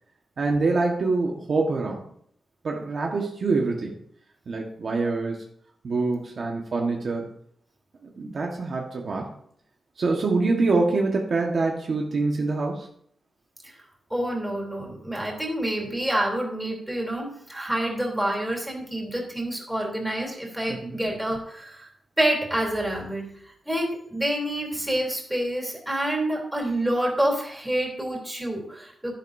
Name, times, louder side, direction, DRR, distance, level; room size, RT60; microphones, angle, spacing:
voice 1, 0.4-2.0 2.6-4.0 4.5-5.4 5.8-7.3 8.2-9.3 10.0-12.9 20.7-21.0, right 3 dB, 50° right, 0 dB, 1.5 m, -25 dB
voice 2, 14.1-21.9 22.2-23.3 23.7-29.1, right 1 dB, 5° right, -2 dB, 3.4 m, -27 dB
12.0 x 12.0 x 2.7 m, 0.66 s
wide cardioid pair, 130°, 0 cm